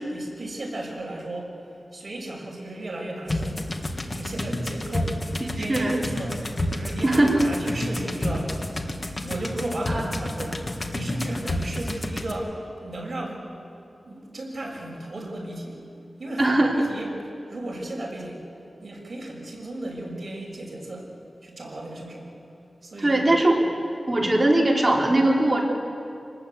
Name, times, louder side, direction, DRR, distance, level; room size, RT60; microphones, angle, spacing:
voice 1, 0.1-1.6 1.9-3.6 4.1-8.6 9.2-13.5 14.0-15.8 16.2-17.1 17.5-18.4 18.8-21.1 21.4-22.3 22.8-23.2, right 1 dB, 45° right, -2 dB, 6.4 m, -35 dB
sound 1, 3.3-12.3, left 1 dB, 35° left, 2.0 m, -30 dB
voice 2, 5.7-6.0 7.0-7.4 9.9-10.0 16.4-16.8 23.0-23.6 24.1-25.6, right 1 dB, 25° right, -2 dB, 3.8 m, -20 dB
27.0 x 19.5 x 8.3 m, 2.6 s
wide cardioid pair, 115°, 0 cm